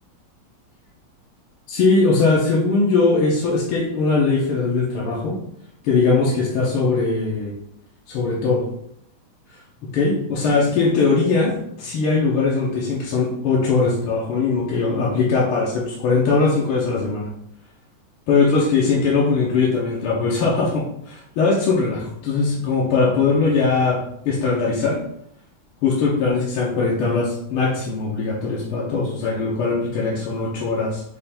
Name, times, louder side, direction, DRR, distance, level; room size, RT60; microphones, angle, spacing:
voice 1, 1.7-5.4 5.8-7.6 8.1-8.7 9.8-17.3 18.3-25.0 25.8-31.0, left 4 dB, 90° left, -4 dB, 1.7 m, -20 dB
5.4 x 2.2 x 4.3 m, 0.73 s
omnidirectional pair, 2.3 m